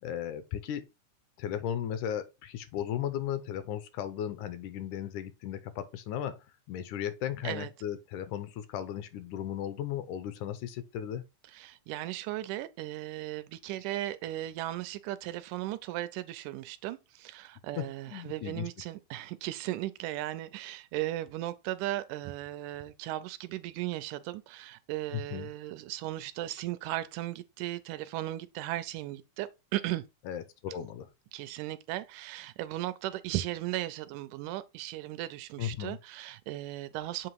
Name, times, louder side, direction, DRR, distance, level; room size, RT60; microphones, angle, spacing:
voice 1, 0.0-0.9 1.4-6.4 6.7-11.2 17.8-18.7 25.1-25.5 30.3-31.1 35.6-36.0, left 10 dB, 80° left, 2.0 m, -36 dB
voice 2, 11.5-30.0 31.3-37.3, right 15 dB, 80° right, 2.0 m, -36 dB
7.5 x 2.9 x 4.6 m
omnidirectional pair, 3.7 m